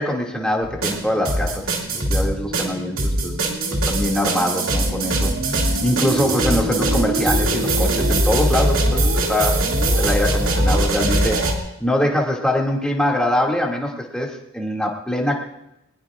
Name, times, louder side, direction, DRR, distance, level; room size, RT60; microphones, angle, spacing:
voice 1, 0.0-3.3 3.9-9.0 9.3-9.6 9.9-11.4 11.8-15.4, left 1 dB, 5° left, -1 dB, 2.2 m, -23 dB
sound 1, 0.6-11.6, right 1 dB, 75° right, 2.3 m, -21 dB
21.0 x 20.0 x 2.5 m, 0.87 s
head